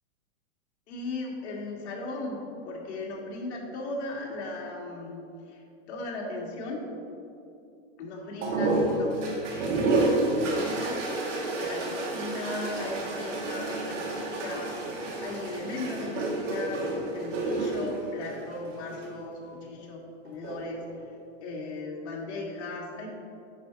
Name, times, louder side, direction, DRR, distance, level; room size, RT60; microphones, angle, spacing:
voice 1, 0.9-6.8 8.0-20.8 21.4-23.1, left 2 dB, 65° left, -2 dB, 1.9 m, -37 dB
sound 1, 8.4-19.1 20.3-20.8, right 2 dB, 90° right, 2.0 m, -30 dB
9.3 x 4.9 x 4.5 m, 2.6 s
supercardioid pair, 160°, 36 cm